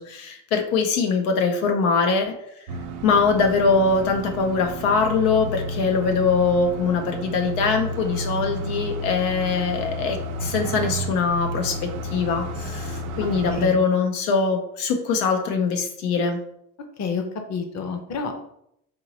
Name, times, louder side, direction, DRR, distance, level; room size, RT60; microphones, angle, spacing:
voice 1, 0.0-2.4 3.0-16.4, left 4 dB, 85° left, 4 dB, 0.7 m, -22 dB
sound 1, 2.7-13.7, right 1 dB, 90° right, 0.6 m, -31 dB
voice 2, 17.5-18.3, left 5 dB, 40° left, 6 dB, 0.7 m, -28 dB
4.5 x 2.8 x 2.7 m, 0.75 s
supercardioid pair, 85°, 43 cm